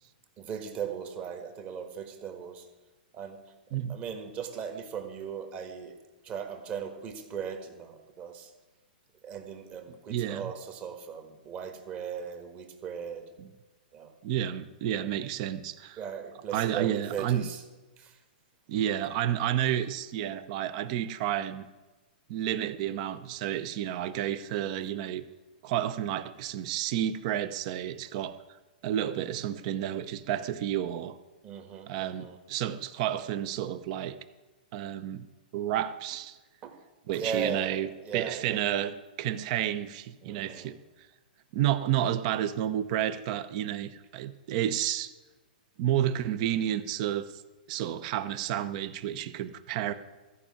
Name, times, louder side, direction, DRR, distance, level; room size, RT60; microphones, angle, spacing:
voice 1, 0.4-2.7 3.1-3.4 3.9-6.0 6.2-8.5 9.2-13.3 13.9-14.1 15.0-15.1 16.0-17.6 18.0-18.2 31.4-32.4 36.6-36.8 37.1-37.8 38.0-38.6 40.2-40.7, right 7 dB, 30° right, 6 dB, 1.6 m, -38 dB
voice 2, 10.1-10.5 13.4-13.5 14.2-16.0 16.5-17.5 18.7-21.7 22.3-25.2 25.6-28.3 28.8-31.2 31.9-34.2 34.7-35.2 35.5-36.4 37.1-40.8 41.5-45.1 45.8-47.4 47.7-49.9, right 11 dB, 45° right, 13 dB, 0.8 m, -31 dB
13.5 x 5.4 x 8.7 m, 1.2 s
hypercardioid pair, 135°, 5 cm